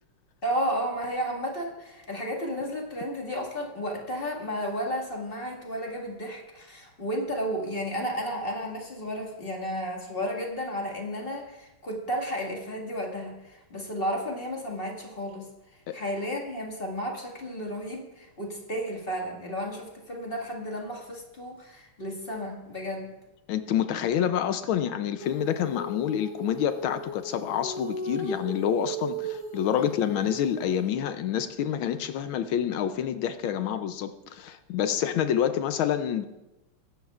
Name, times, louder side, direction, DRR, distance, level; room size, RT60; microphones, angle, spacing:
voice 1, 0.4-15.5 15.9-23.2 29.8-29.9, equal, 25° left, 1.9 m, -33 dB
voice 2, 23.5-36.2, left 9 dB, 75° left, 1.3 m, -28 dB
Female singing, 25.2-30.9, right 1 dB, 75° right, 5.4 m, -36 dB
22.0 x 10.5 x 2.4 m
omnidirectional pair, 2.4 m